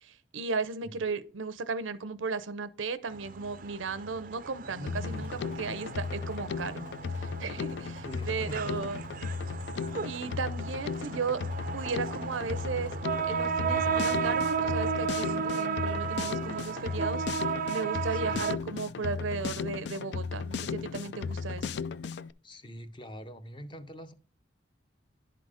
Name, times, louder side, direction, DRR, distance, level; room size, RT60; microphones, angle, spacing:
voice 1, 0.0-6.8 7.2-9.0 10.0-11.4 11.7-17.3 17.7-21.8, right 4 dB, 90° right, 0.6 m, -35 dB
sound 1, 3.1-18.6, right 6 dB, 45° right, 0.4 m, -34 dB
voice 2, 4.6-5.3 8.0-8.8 18.1-18.4 22.4-24.1, equal, 25° left, 0.6 m, -43 dB
Drum kit, 4.9-22.3, left 5 dB, 60° left, 0.3 m, -36 dB
10.5 x 3.9 x 4.9 m
head